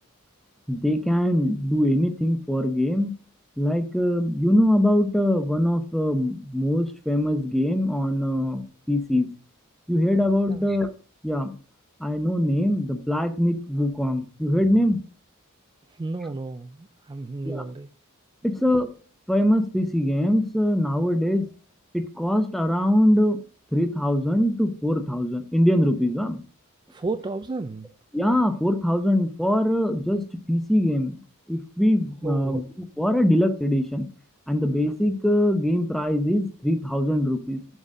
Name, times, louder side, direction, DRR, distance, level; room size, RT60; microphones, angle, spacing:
voice 1, 0.7-3.1 3.6-9.3 9.9-10.9 11.2-11.5 12.0-15.0 17.4-17.6 18.4-18.9 19.3-21.5 21.9-23.4 23.7-26.4 28.1-31.2 31.5-32.6 33.0-34.1 34.5-37.6, equal, ahead, 0.7 m, -22 dB
voice 2, 15.9-17.9 26.9-27.9 32.2-32.6, right 3 dB, 20° right, 0.3 m, -32 dB
7.3 x 3.9 x 6.6 m
head